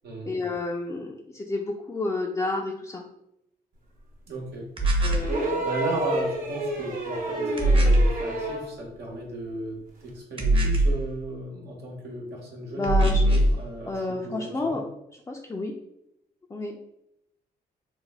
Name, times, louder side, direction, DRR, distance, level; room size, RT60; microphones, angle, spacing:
voice 1, 0.3-3.0 5.0-5.6 12.7-13.2 13.9-14.8 15.3-15.7 16.5-16.8, left 2 dB, 20° left, 0 dB, 0.5 m, -30 dB
voice 2, 4.3-4.7 5.6-12.9 13.3-14.8, right 1 dB, 80° right, -2 dB, 1.1 m, -35 dB
sound 1, 4.8-5.3 7.6-8.2 10.4-11.0 12.8-13.6, right 1 dB, 30° right, 0.8 m, -20 dB
sound 2, 5.2-8.7 10.1-10.2, right 2 dB, 55° right, 1.0 m, -29 dB
3.3 x 2.1 x 3.5 m, 0.83 s
supercardioid pair, 65°, 17 cm